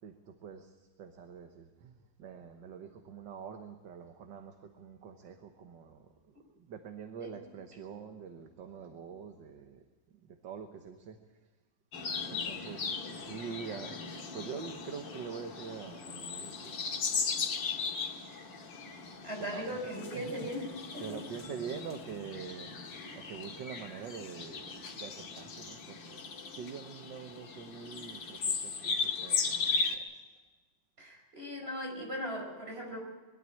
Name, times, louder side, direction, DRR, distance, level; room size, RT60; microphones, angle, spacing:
voice 1, 0.0-9.8 10.2-11.2 12.3-16.8 19.4-20.5 21.0-26.2 26.5-30.2, right 6 dB, 75° right, 6 dB, 1.8 m, -45 dB
sound 1, 11.9-30.0, left 5 dB, 80° left, 2.5 m, -37 dB
voice 2, 19.2-21.2 31.0-33.0, equal, 30° right, 0 dB, 5.5 m, -39 dB
22.5 x 12.5 x 9.9 m, 1.3 s
omnidirectional pair, 2.0 m